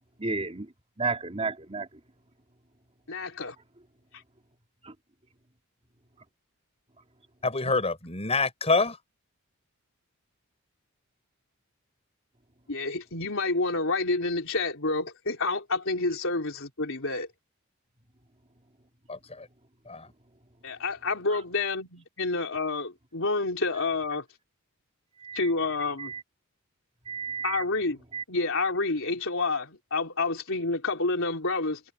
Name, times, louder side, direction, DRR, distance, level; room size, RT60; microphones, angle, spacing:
voice 1, 0.2-0.7 1.0-1.9 4.8-4.9 21.3-21.4 25.2-25.5 26.0-26.2 27.1-27.6 28.1-28.2, right 4 dB, 30° right, 3.1 m, -32 dB
voice 2, 3.1-3.5 7.6-7.7 12.7-17.3 20.6-24.2 25.3-26.1 27.4-28.0 28.3-31.8, left 3 dB, 65° left, 4.1 m, -29 dB
voice 3, 7.4-9.0 19.1-19.5 19.9-20.1, left 3 dB, 30° left, 6.2 m, -26 dB
head